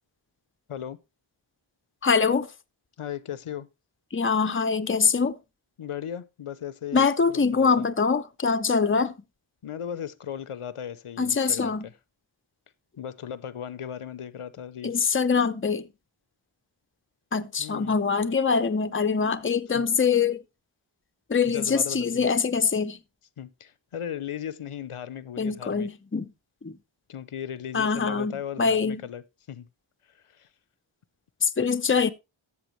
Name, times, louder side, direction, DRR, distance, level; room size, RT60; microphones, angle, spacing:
voice 1, 2.0-2.5 4.1-5.3 6.9-9.1 11.2-11.9 14.8-15.8 17.3-20.4 21.3-23.0 25.4-26.3 26.6-26.7 27.7-29.0 31.4-32.1, left 5 dB, 25° left, 0.6 m, -24 dB
voice 2, 3.0-3.7 5.8-7.0 7.3-7.8 9.6-11.9 13.0-15.1 17.6-17.9 19.8-19.9 21.4-22.3 23.4-25.9 27.1-29.7 30.3-30.5, left 9 dB, 85° left, 0.7 m, -37 dB
13.0 x 7.0 x 3.0 m
wide cardioid pair, 60°, 50 cm